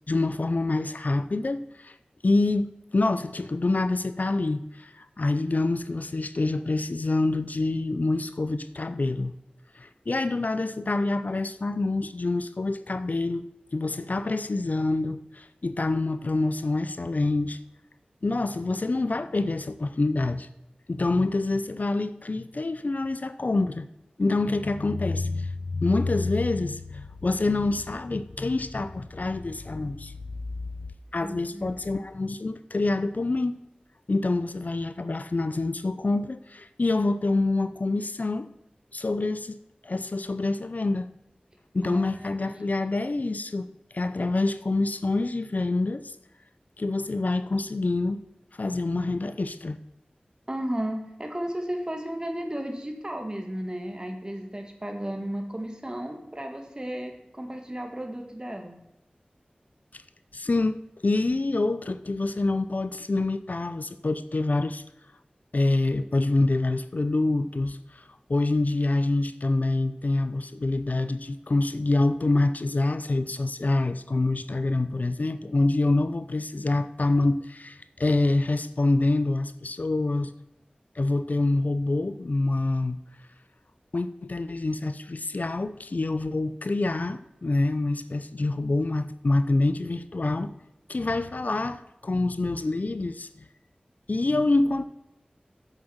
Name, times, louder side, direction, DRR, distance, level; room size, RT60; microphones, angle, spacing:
voice 1, 0.1-2.0 2.2-9.3 9.7-17.6 18.2-20.5 20.9-23.9 24.2-30.1 31.1-33.6 34.1-38.5 38.9-39.6 39.8-41.1 41.7-43.7 43.9-46.1 46.8-48.2 48.5-49.8 59.9-60.0 60.3-60.8 61.0-64.8 65.5-68.0 68.3-80.3 81.0-83.0 83.9-90.5 90.9-93.3 94.1-94.8, left 2 dB, 60° left, 0.6 m, -26 dB
voice 2, 31.2-31.8 41.8-42.1 42.4-42.5 50.5-58.8, right 1 dB, 25° right, 2.0 m, -34 dB
8.0 x 7.6 x 7.1 m
wide cardioid pair, 50°, 3 cm